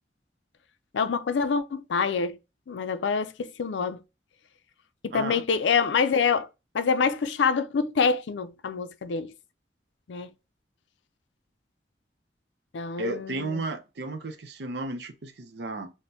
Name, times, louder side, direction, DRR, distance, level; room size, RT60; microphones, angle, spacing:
voice 1, 0.9-2.4 2.7-4.0 5.0-6.5 6.7-9.3 10.1-10.3 12.7-13.6, left 5 dB, 85° left, 0.4 m, -26 dB
voice 2, 5.1-5.4 13.0-15.9, right 2 dB, 70° right, 0.6 m, -33 dB
6.0 x 2.1 x 2.7 m
head